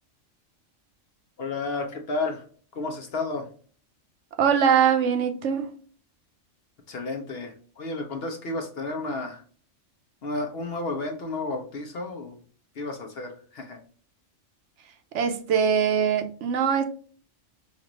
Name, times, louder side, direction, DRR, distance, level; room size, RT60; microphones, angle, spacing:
voice 1, 1.4-2.4 2.7-3.5 6.9-9.4 10.2-12.4 12.7-13.8, left 3 dB, 55° left, 4 dB, 0.9 m, -32 dB
voice 2, 4.4-5.7 15.1-16.8, right 7 dB, 70° right, 7 dB, 1.0 m, -22 dB
5.1 x 2.5 x 2.9 m, 0.43 s
omnidirectional pair, 1.3 m